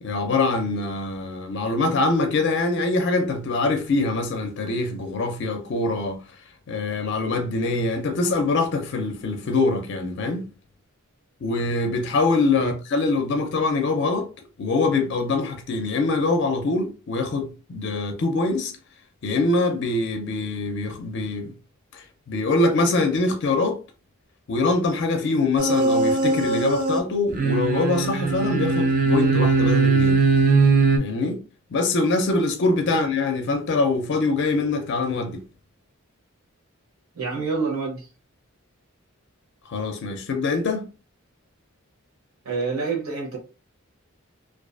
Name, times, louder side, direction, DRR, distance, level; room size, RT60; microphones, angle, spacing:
voice 1, 0.0-6.2 6.7-10.4 11.4-14.3 14.6-18.7 19.2-21.5 21.9-23.8 24.5-30.2 31.0-31.4 31.7-35.4 39.7-40.8, left 3 dB, 55° left, 0.4 m, -24 dB
sound 1, 25.6-27.0 27.3-31.0, right 3 dB, 40° right, 0.4 m, -20 dB
voice 2, 37.1-38.1 42.4-43.4, right 4 dB, 75° right, 0.9 m, -27 dB
2.4 x 2.4 x 2.3 m
head